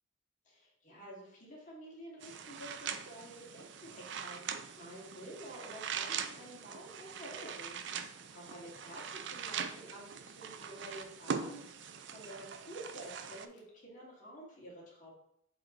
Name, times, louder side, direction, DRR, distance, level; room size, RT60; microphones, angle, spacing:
voice 1, 0.4-7.8 8.3-15.1, right 1 dB, 40° left, -5 dB, 2.2 m, -50 dB
sound 1, 2.2-13.5, right 6 dB, 60° right, 0.4 m, -42 dB
7.6 x 3.2 x 3.8 m, 0.72 s
head